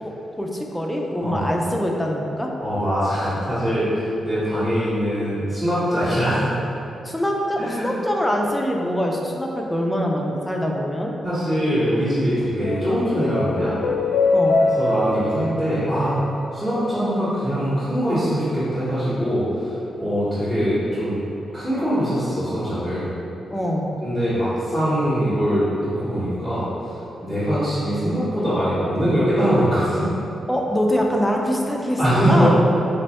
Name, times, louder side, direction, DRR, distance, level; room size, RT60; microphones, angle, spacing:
voice 1, 0.0-2.5 7.0-11.1 14.3-14.6 23.5-24.0 30.5-32.6, equal, 5° left, 0 dB, 0.3 m, -24 dB
voice 2, 2.6-6.5 7.6-7.9 11.2-13.8 14.8-16.2 16.5-21.2 21.5-23.1 24.0-26.9 27.2-30.1 32.0-32.6, equal, 15° right, -13 dB, 0.9 m, -22 dB
sound 1, 12.4-17.0, left 3 dB, 80° left, 0.4 m, -24 dB
3.4 x 2.2 x 4.0 m, 2.8 s
wide cardioid pair, 135°, 0 cm